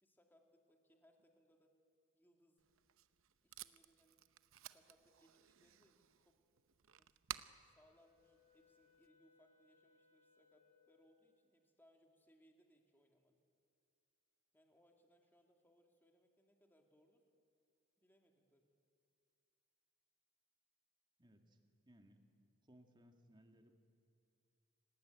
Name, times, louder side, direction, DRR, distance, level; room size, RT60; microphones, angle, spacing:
voice 1, 0.0-1.7 2.1-2.6 3.4-4.2 4.7-6.4 7.0-7.2 7.6-13.4 14.5-17.3 18.0-18.7, equal, 10° left, 2 dB, 2.2 m, -73 dB
Packing tape duct tape, 2.6-9.1, right 11 dB, 65° right, 0.8 m, -55 dB
Wind instrument woodwind instrument, 7.3-11.4, left 5 dB, 25° left, 4.1 m, -74 dB
voice 2, 21.2-21.6 21.9-22.2 22.7-23.8, equal, 20° right, 4 dB, 2.1 m, -65 dB
28.5 x 19.0 x 9.1 m, 2.4 s
head